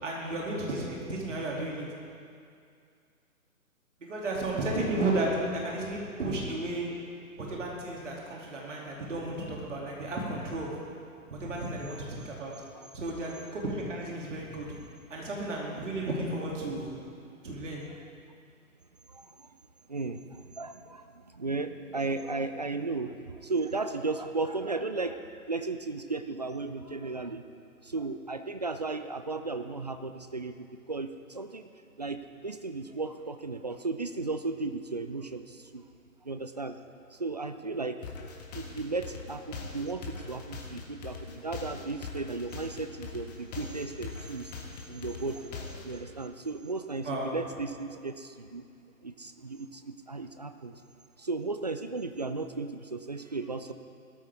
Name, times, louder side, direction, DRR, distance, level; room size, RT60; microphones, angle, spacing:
voice 1, 0.0-1.9 4.1-6.9 7.4-10.7 11.3-12.5 12.9-14.7 15.1-16.9 17.4-17.8 47.0-47.3, right 2 dB, 55° right, -3 dB, 2.9 m, -33 dB
voice 2, 19.1-19.5 19.9-27.4 27.8-31.7 32.0-35.8 36.2-36.8 37.1-38.0 38.5-44.5 44.9-48.6 49.0-50.7 51.2-53.7, right 3 dB, 30° right, 8 dB, 0.4 m, -35 dB
sound 1, 38.0-46.0, left 5 dB, 30° left, 1.4 m, -41 dB
17.5 x 13.5 x 3.6 m, 2.4 s
figure-of-eight pair, 130°, 43 cm